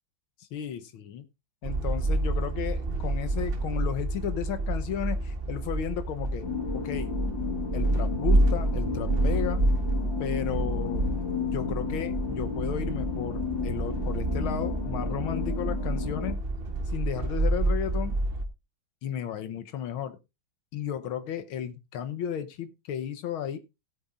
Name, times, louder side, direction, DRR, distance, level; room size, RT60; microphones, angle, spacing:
voice 1, 0.5-1.3 1.6-6.5 6.7-7.2 7.7-9.6 10.2-11.1 11.5-16.4 16.9-18.2 19.0-20.2 20.7-23.6, left 9 dB, 90° left, 1.8 m, -34 dB
sound 1, 1.6-18.5, right 2 dB, 40° right, 0.9 m, -28 dB
sound 2, 6.4-16.3, left 6 dB, 60° left, 2.8 m, -33 dB
17.0 x 8.6 x 2.5 m
omnidirectional pair, 2.2 m